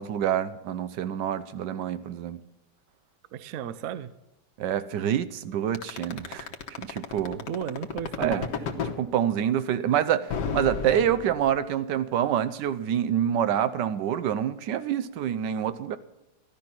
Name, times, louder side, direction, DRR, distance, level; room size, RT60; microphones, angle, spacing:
voice 1, 0.0-2.4 4.6-6.5 6.8-7.5 8.2-8.4 9.0-10.3 10.5-16.0, right 10 dB, 85° right, 1.4 m, -26 dB
voice 2, 3.3-4.1 7.5-8.7, right 9 dB, 65° right, 1.0 m, -34 dB
sound 1, 5.7-9.0 10.3-11.7, left 6 dB, 85° left, 1.8 m, -32 dB
14.5 x 11.5 x 5.9 m
omnidirectional pair, 1.8 m